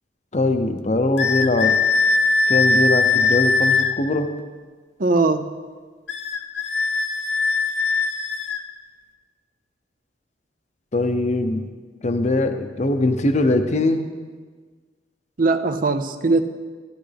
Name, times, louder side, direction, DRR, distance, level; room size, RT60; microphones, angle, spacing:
voice 1, 0.3-1.8 2.5-4.3 10.9-11.6 12.0-14.0, left 2 dB, 40° left, 7 dB, 0.7 m, -21 dB
sound 1, 1.2-3.9 6.1-8.6, left 4 dB, 70° left, 0.9 m, -20 dB
voice 2, 5.0-5.5 15.4-16.4, right 3 dB, 50° right, 9 dB, 0.6 m, -20 dB
13.0 x 11.5 x 3.5 m, 1.5 s
head